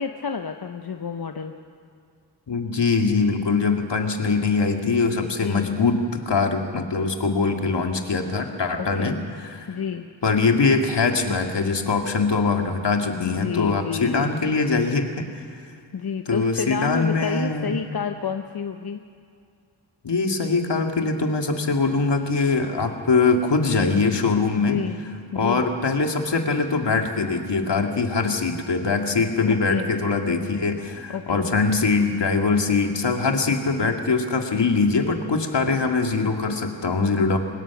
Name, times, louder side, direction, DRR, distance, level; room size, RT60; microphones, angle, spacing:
voice 1, 0.0-1.5 5.4-5.7 8.8-9.2 9.7-10.0 13.2-14.3 15.9-19.0 24.6-25.0 25.3-25.6 29.4-29.9 31.1-31.5, left 6 dB, 55° left, 6 dB, 1.0 m, -29 dB
voice 2, 2.5-9.7 10.2-15.2 16.3-17.8 20.0-24.8 25.3-37.4, left 4 dB, 75° left, 3 dB, 2.2 m, -22 dB
23.5 x 20.5 x 6.0 m, 2.4 s
cardioid pair, 55°, 43 cm